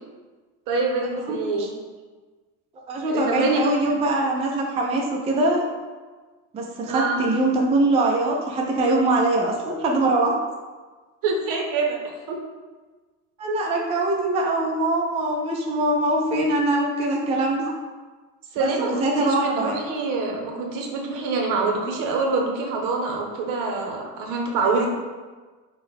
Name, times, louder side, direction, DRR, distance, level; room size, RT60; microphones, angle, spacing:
voice 1, 0.7-1.7 3.1-3.6 6.9-7.2 11.2-12.0 12.3-12.4 18.5-24.9, right 3 dB, 65° right, 1 dB, 0.9 m, -25 dB
voice 2, 1.3-1.7 2.9-5.7 6.5-10.3 13.4-17.7 18.6-19.8 24.6-24.9, right 2 dB, 20° right, -1 dB, 0.4 m, -23 dB
5.3 x 2.2 x 3.5 m, 1.3 s
cardioid pair, 135°, 35 cm